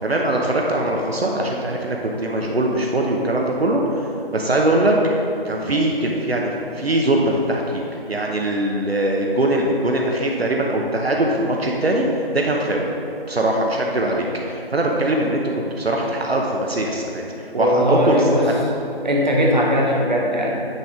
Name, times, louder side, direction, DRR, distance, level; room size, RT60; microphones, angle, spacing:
voice 1, 0.0-7.8 8.1-12.9 13.3-18.6, right 1 dB, 70° right, 0 dB, 0.8 m, -21 dB
voice 2, 17.5-18.5 19.0-20.5, equal, 45° right, -1 dB, 1.1 m, -19 dB
9.2 x 5.0 x 3.6 m, 2.7 s
figure-of-eight pair, 170°, 31 cm